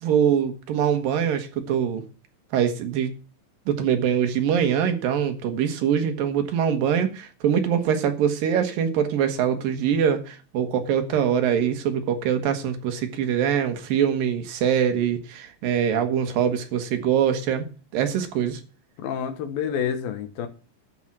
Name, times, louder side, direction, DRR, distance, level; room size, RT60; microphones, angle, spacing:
voice 1, 0.0-2.0 2.5-3.1 3.7-17.7 17.9-18.6, right 8 dB, 75° right, 3.1 m, -23 dB
voice 2, 19.0-20.5, left 8 dB, 85° left, 3.2 m, -28 dB
12.0 x 5.4 x 8.6 m
omnidirectional pair, 4.1 m